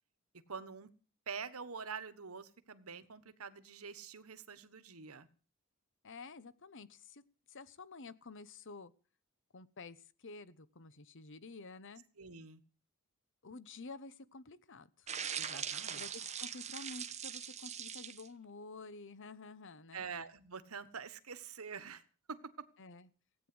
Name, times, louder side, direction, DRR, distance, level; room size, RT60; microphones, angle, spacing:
voice 1, 0.5-0.9 1.3-5.3 12.2-12.6 15.4-16.0 19.9-22.0 22.3-22.6, right 5 dB, 85° right, 14 dB, 1.4 m, -46 dB
voice 2, 6.0-7.2 7.5-8.9 9.5-10.0 10.2-12.0 13.4-15.1 15.9-20.1 22.8-23.1, left 3 dB, 60° left, 16 dB, 1.1 m, -50 dB
sound 1, 15.1-18.3, right 8 dB, 30° right, 1.2 m, -41 dB
17.0 x 9.3 x 7.9 m, 0.39 s
head